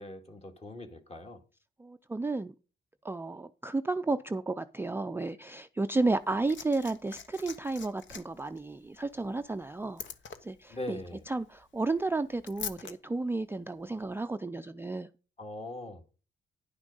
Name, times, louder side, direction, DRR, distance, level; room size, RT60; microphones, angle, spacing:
voice 1, 0.0-1.4 10.7-11.2 15.4-16.0, left 1 dB, 30° left, 2.0 m, -41 dB
voice 2, 1.8-2.5 3.0-10.0 10.4-11.0 11.3-15.1, right 3 dB, 10° right, 0.4 m, -32 dB
Liquid, 6.0-12.9 14.0-14.1, left 7 dB, 70° left, 1.0 m, -45 dB
10.5 x 6.1 x 5.4 m
cardioid pair, 85°, 20 cm